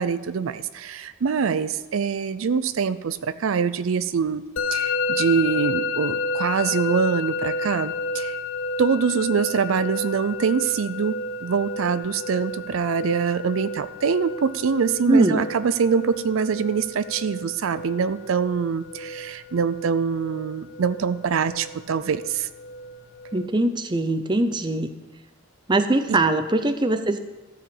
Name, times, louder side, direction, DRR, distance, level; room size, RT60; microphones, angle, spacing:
voice 1, 0.0-4.4 4.7-8.4 8.8-11.2 11.4-22.5 26.1-26.2, right 6 dB, 80° right, 13 dB, 0.4 m, -24 dB
Musical instrument, 4.6-23.5, left 3 dB, 75° left, 0.6 m, -31 dB
voice 2, 15.1-15.4 23.3-24.9 25.7-27.2, right 2 dB, 20° right, 9 dB, 0.5 m, -21 dB
13.5 x 4.9 x 7.1 m, 1.1 s
head